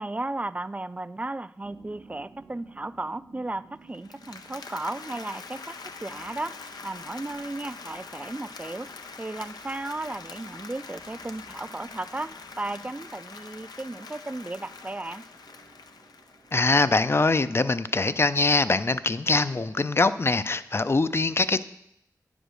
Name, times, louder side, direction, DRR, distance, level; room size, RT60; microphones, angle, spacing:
voice 1, 0.0-5.7 6.0-6.5 6.8-8.9 9.2-15.2, right 2 dB, 20° right, 15 dB, 0.3 m, -35 dB
sound 1, 1.6-20.3, right 3 dB, 85° right, 2.1 m, -55 dB
Applause, 3.9-17.0, left 4 dB, 85° left, 0.6 m, -44 dB
voice 2, 16.5-21.6, left 3 dB, 40° left, 13 dB, 0.5 m, -23 dB
9.9 x 5.1 x 6.3 m, 0.79 s
cardioid pair, 50°, 7 cm